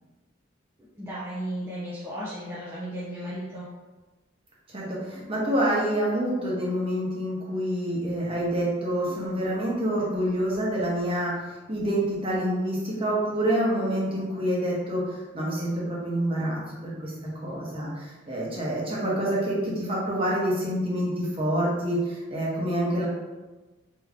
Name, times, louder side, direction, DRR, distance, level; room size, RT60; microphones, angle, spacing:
voice 1, 1.0-3.6, right 1 dB, 15° right, -9 dB, 0.6 m, -34 dB
voice 2, 4.7-17.1 17.4-23.1, right 1 dB, 30° right, -5 dB, 1.0 m, -27 dB
3.6 x 3.0 x 3.6 m, 1.2 s
head